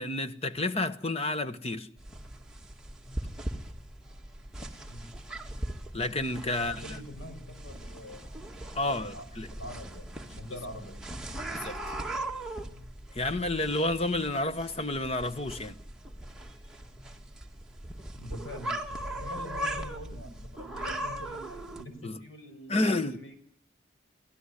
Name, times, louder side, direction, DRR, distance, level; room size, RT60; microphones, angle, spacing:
voice 1, 0.0-1.9 5.9-7.0 8.7-9.5 11.5-11.8 13.1-15.8 22.0-22.2 22.7-23.2, left 2 dB, 30° left, 1.2 m, -30 dB
sound 1, 2.0-21.8, right 1 dB, 5° right, 2.0 m, -39 dB
voice 2, 6.6-8.3 8.7-11.0 18.1-18.8 19.2-23.4, left 1 dB, 85° left, 6.4 m, -44 dB
25.0 x 17.0 x 9.9 m
head